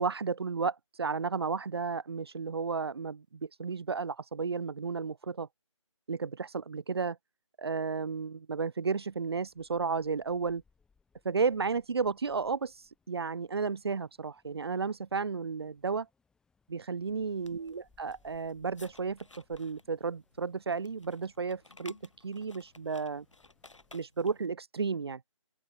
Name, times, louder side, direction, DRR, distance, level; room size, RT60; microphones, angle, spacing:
voice 1, 0.0-5.5 6.1-7.2 7.6-10.6 11.2-12.7 13.1-16.1 16.7-22.0 22.2-23.2 23.9-25.2, right 5 dB, 50° right, 0.7 m, -33 dB
sound 1, 9.0-24.1, left 5 dB, 5° left, 5.8 m, -72 dB
sound 2, 17.3-24.5, left 3 dB, 70° left, 7.6 m, -57 dB
open air
figure-of-eight pair, 150°, 17 cm